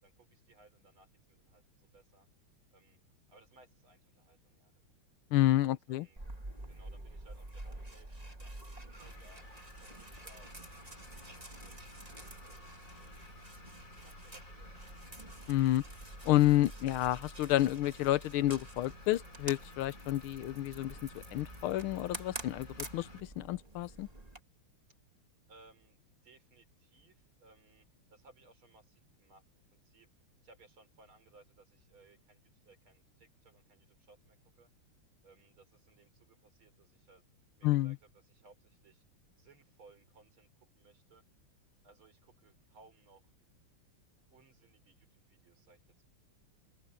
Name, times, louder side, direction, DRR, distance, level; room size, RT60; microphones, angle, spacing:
voice 1, 0.0-2.3 2.7-3.0 3.3-4.9 5.6-6.3 6.7-9.4 9.8-11.9 12.2-12.6 12.8-13.1 13.9-15.1 25.5-29.4 29.7-30.1 30.4-34.7 35.2-37.2 37.5-39.0 39.4-41.2 41.8-43.3 44.3-45.8, right 3 dB, 70° right, 5.9 m, -63 dB
voice 2, 5.3-6.0 15.5-15.8 16.2-23.1 23.4-24.1 37.6-37.9, left 15 dB, 80° left, 1.6 m, -29 dB
sound 1, 6.2-24.4, right 2 dB, 20° right, 2.5 m, -48 dB
sound 2, 8.9-23.2, left 2 dB, 35° left, 4.3 m, -54 dB
open air
omnidirectional pair, 2.4 m